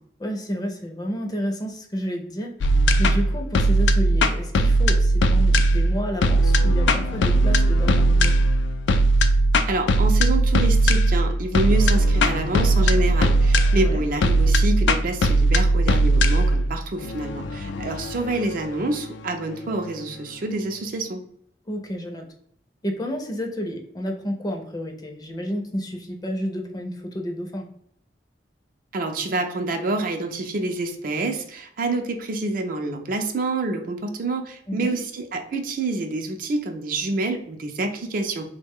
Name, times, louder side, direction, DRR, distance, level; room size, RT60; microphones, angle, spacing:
voice 1, 0.2-8.4 13.7-14.0 21.7-22.3 22.8-27.7 34.7-34.9, equal, 20° left, 2 dB, 0.5 m, -31 dB
sound 1, 2.6-19.7, right 1 dB, 80° left, 0.3 m, -19 dB
voice 2, 9.7-21.2 28.9-38.5, right 2 dB, 50° right, 5 dB, 0.4 m, -27 dB
3.2 x 2.1 x 3.5 m, 0.68 s
head